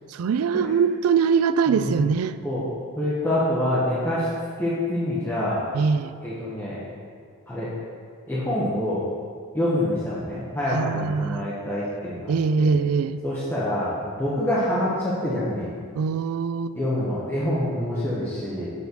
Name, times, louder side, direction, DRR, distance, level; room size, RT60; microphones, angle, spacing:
voice 1, 0.1-2.4 5.7-6.1 10.7-11.5 12.3-13.2 16.0-16.8, right 5 dB, 85° right, 13 dB, 0.3 m, -22 dB
voice 2, 1.7-2.0 2.4-2.7 3.0-4.3 4.6-5.6 6.2-6.8 7.5-7.7 8.3-9.0 9.5-12.7 13.2-15.7 16.7-18.7, left 1 dB, 10° left, -9 dB, 1.0 m, -26 dB
6.8 x 4.3 x 6.7 m, 2.2 s
head